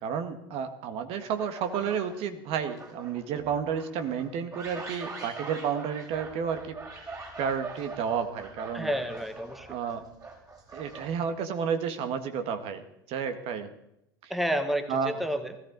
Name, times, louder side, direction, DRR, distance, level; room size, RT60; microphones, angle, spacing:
voice 1, 0.0-6.7 7.4-8.9 9.7-10.0 10.7-12.8 13.1-13.7 14.2-14.3 14.9-15.1, right 7 dB, 50° right, 8 dB, 1.8 m, -31 dB
sound 1, 1.2-2.2 2.5-11.4, right 3 dB, 25° right, 5.0 m, -43 dB
voice 2, 8.7-9.7 14.3-15.6, equal, ahead, 9 dB, 1.5 m, -30 dB
19.5 x 14.5 x 4.0 m, 0.84 s
hypercardioid pair, 80°, 13 cm